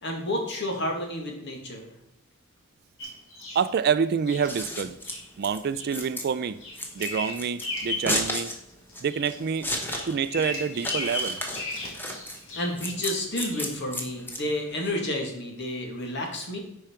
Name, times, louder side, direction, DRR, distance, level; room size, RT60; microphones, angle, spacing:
voice 1, 0.0-1.9 12.5-16.6, left 1 dB, 60° left, 2.0 m, -30 dB
Bird vocalization bird call bird song, 3.0-3.7 4.3-4.5 5.0-5.2 5.7-6.0 6.4-8.2 8.6-9.4 9.7-12.8 13.5-13.7, left 2 dB, 75° left, 2.0 m, -35 dB
voice 2, 3.5-5.0 5.4-6.6 6.9-8.5 9.0-9.7 10.1-11.4, right 6 dB, 50° right, 0.4 m, -27 dB
Scissors, 4.3-14.9, left 1 dB, 10° left, 1.1 m, -34 dB
9.9 x 4.7 x 4.4 m
head